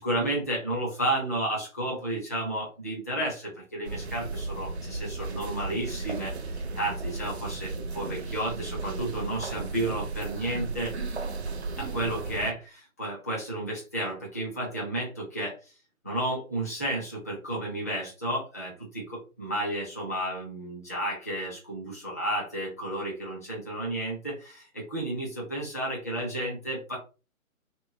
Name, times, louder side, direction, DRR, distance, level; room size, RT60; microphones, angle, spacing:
voice 1, 0.0-11.0 11.8-15.7 16.0-27.0, right 1 dB, 10° left, -4 dB, 0.6 m, -32 dB
sound 1, 3.9-12.5, right 3 dB, 50° right, 0.6 m, -35 dB
3.2 x 3.0 x 3.2 m, 0.33 s
figure-of-eight pair, 145°, 43 cm